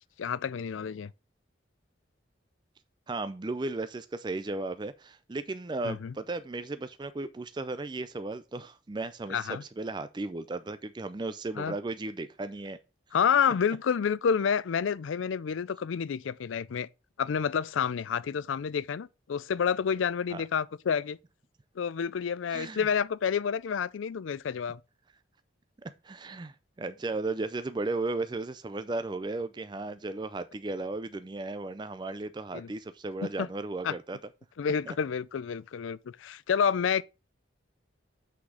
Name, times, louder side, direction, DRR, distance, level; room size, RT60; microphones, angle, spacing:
voice 1, 0.2-1.1 5.8-6.1 9.3-9.6 11.6-11.7 13.1-16.9 17.2-21.2 21.8-24.8 32.5-32.7 33.4-33.5 33.8-34.0 34.6-37.0, left 7 dB, 90° left, 0.4 m, -29 dB
voice 2, 3.1-12.8 20.3-20.4 22.5-22.9 25.8-34.2 34.9-35.0, right 2 dB, 25° right, 0.4 m, -35 dB
6.1 x 5.8 x 4.9 m
head